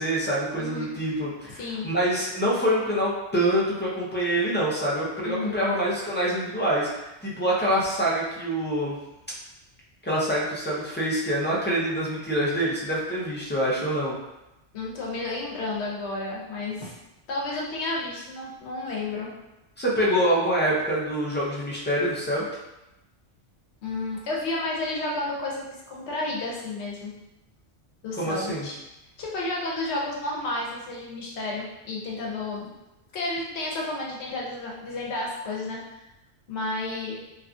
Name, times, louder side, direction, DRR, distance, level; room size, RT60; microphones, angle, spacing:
voice 1, 0.0-9.0 10.0-14.1 19.8-22.5 28.2-28.7, right 1 dB, 15° left, -6 dB, 0.4 m, -25 dB
voice 2, 0.6-0.9 1.5-1.9 5.2-5.6 14.7-16.9 17.3-19.3 23.8-27.1 28.0-28.8 29.2-32.7 33.1-36.0 36.5-37.2, left 2 dB, 75° left, -3 dB, 1.0 m, -31 dB
3.0 x 2.3 x 2.5 m, 0.94 s
omnidirectional pair, 1.2 m